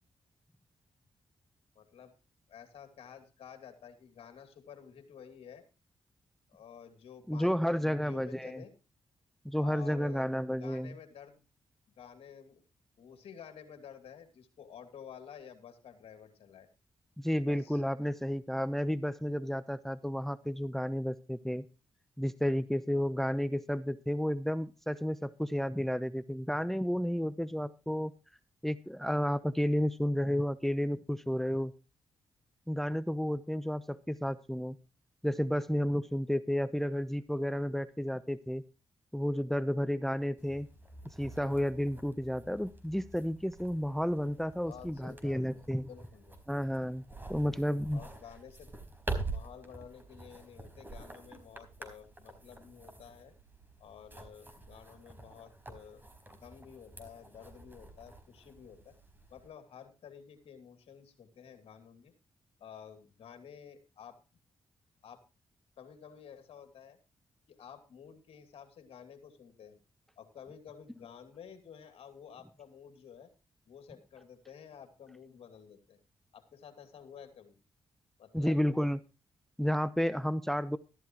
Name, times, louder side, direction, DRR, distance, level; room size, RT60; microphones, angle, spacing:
voice 1, 1.7-2.1 2.5-5.6 6.5-8.7 9.6-11.5 12.0-12.6 13.0-16.7 17.4-17.8 44.6-46.4 47.4-48.7 49.3-53.3 53.8-56.0 56.3-58.9 59.3-62.1 62.6-64.2 65.0-65.2 65.8-67.0 67.5-69.8 70.2-73.3 73.7-76.0 76.3-77.5 78.2-78.6, left 8 dB, 75° left, 7 dB, 2.6 m, -52 dB
voice 2, 7.3-8.6 9.4-10.9 17.2-21.6 22.2-28.1 28.6-31.7 32.7-34.8 35.2-38.6 39.1-40.7 41.2-45.9 46.5-47.0 47.3-48.0 78.3-79.0 79.6-80.8, equal, 5° left, 15 dB, 0.8 m, -32 dB
sound 1, 40.4-59.5, right 3 dB, 20° right, 4.5 m, -46 dB
13.0 x 12.5 x 3.0 m, 0.31 s
supercardioid pair, 50°, 10 cm